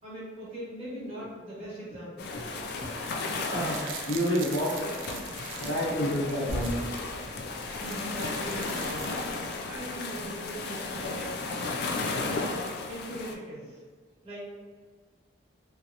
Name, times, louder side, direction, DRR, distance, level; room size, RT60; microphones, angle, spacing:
voice 1, 0.0-2.3 7.6-9.4 9.7-11.8 12.4-13.8 14.2-14.4, equal, 30° right, -8 dB, 1.2 m, -40 dB
sound 1, 2.2-13.3, left 3 dB, 55° left, 0.3 m, -34 dB
voice 2, 2.3-2.9 3.4-4.7 5.6-6.8 7.3-7.4, equal, 85° left, -7 dB, 1.3 m, -30 dB
sound 2, 3.5-7.0 7.4-7.5 7.7-9.6 10.0-10.1, right 8 dB, 80° right, 0.3 m, -44 dB
sound 3, 6.5-8.4, equal, 10° left, 0.8 m, -38 dB
3.2 x 2.7 x 2.5 m, 1.5 s
head